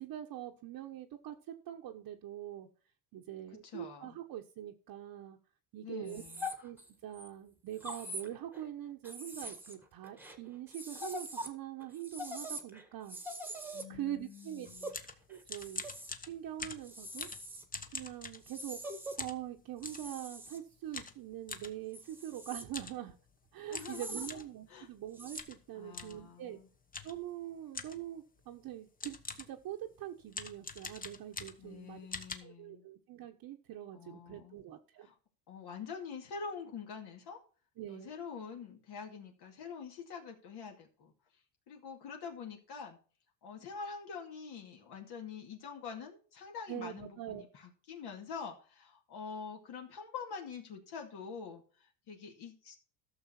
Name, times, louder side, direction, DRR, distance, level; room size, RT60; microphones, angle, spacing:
voice 1, 0.0-2.7 3.1-5.4 5.7-6.2 6.6-6.8 7.0-13.2 13.4-13.6 13.9-14.7 15.3-15.8 16.2-17.3 17.9-18.8 19.2-23.1 23.5-26.6 27.0-32.1 32.4-35.1 37.8-38.1 46.7-47.4, right 12 dB, 50° right, 1 dB, 1.2 m, -43 dB
voice 2, 3.6-4.2 5.8-6.5 13.7-14.9 23.7-24.3 24.7-24.9 25.7-26.7 31.6-32.9 33.9-34.6 35.0-35.2 35.5-37.4 37.9-41.1 41.7-43.0 43.4-52.8, left 6 dB, 55° left, 2 dB, 2.3 m, -46 dB
Small dog crying, 6.1-7.3 7.8-8.7 9.0-11.5 11.8-16.1 16.8-17.6 18.4-19.2 19.8-20.6 21.9-22.6 23.8-24.3 25.1-25.4, equal, 5° right, 1.5 m, -44 dB
sound 1, 14.6-18.8 19.2-20.1 20.9-21.7 22.6-23.0 23.3-23.4 23.7-24.5 25.3-25.6 25.9-26.2 26.9-27.2 27.7-28.1 28.7-28.8 29.0-29.6 30.3-31.8 32.1-32.4, left 4 dB, 20° left, 1.0 m, -44 dB
13.0 x 6.6 x 4.3 m, 0.40 s
cardioid pair, 130°, 47 cm